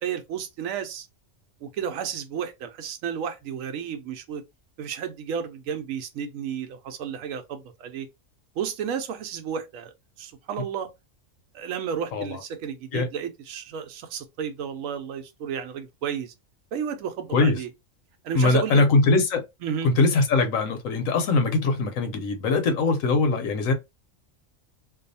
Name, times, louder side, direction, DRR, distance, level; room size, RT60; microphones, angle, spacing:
voice 1, 0.0-1.1 1.6-4.4 4.8-8.1 8.6-9.9 10.2-10.9 11.5-16.3 16.7-17.7 18.2-18.8 19.6-19.9, right 8 dB, 90° right, 1.0 m, -32 dB
voice 2, 18.3-19.4 19.8-23.7, left 3 dB, 90° left, 1.1 m, -21 dB
2.6 x 2.3 x 2.6 m
omnidirectional pair, 1.4 m